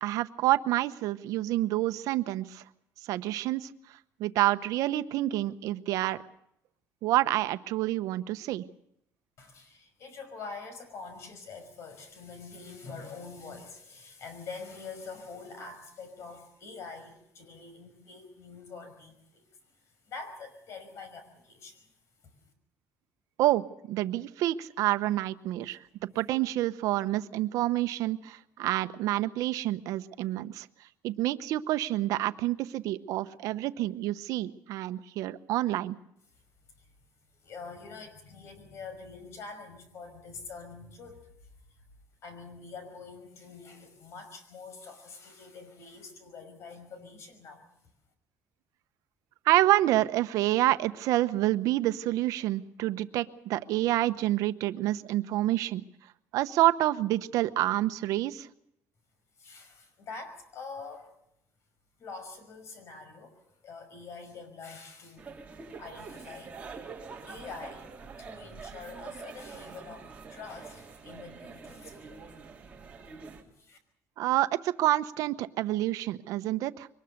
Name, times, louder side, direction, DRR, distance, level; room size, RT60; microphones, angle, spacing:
voice 1, 0.0-2.6 3.0-3.7 4.2-6.2 7.0-8.6 23.4-25.8 26.1-30.7 31.0-36.0 49.4-55.8 56.3-58.5 74.2-76.9, right 15 dB, 80° right, 12 dB, 0.9 m, -28 dB
voice 2, 9.4-19.4 19.8-21.9 36.8-36.9 37.4-41.3 41.7-41.8 42.2-47.7 59.4-61.1 62.0-65.4 65.8-66.6 67.3-72.4 73.6-73.8, left 4 dB, 55° left, 9 dB, 5.7 m, -45 dB
sound 1, 65.2-73.4, right 5 dB, 20° right, 3.3 m, -45 dB
23.5 x 19.5 x 6.6 m, 0.75 s
cardioid pair, 135°, 6 cm